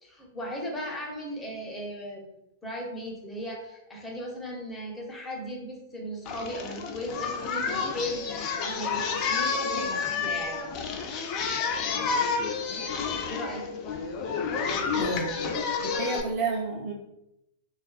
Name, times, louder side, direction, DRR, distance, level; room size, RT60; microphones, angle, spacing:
voice 1, 0.0-2.3 2.6-10.6 13.3-13.6, equal, 10° left, -1 dB, 0.7 m, -37 dB
Singing, 6.3-16.2, left 5 dB, 40° left, 0.4 m, -30 dB
voice 2, 15.0-15.4 15.8-16.9, right 3 dB, 40° right, 1 dB, 0.7 m, -30 dB
2.5 x 2.4 x 2.3 m, 0.85 s
hypercardioid pair, 110°, 0 cm